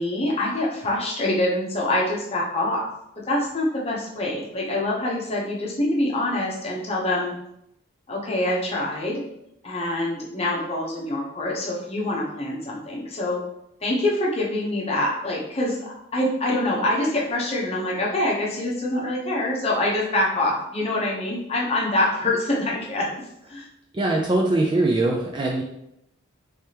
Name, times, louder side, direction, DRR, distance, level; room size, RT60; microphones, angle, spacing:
voice 1, 0.0-2.9 3.3-7.3 8.1-9.2 9.6-13.4 13.8-23.2 23.5-23.7, left 1 dB, 30° left, -3 dB, 0.8 m, -25 dB
voice 2, 23.9-25.6, right 2 dB, 25° right, -1 dB, 0.3 m, -22 dB
3.3 x 3.3 x 2.9 m, 0.80 s
head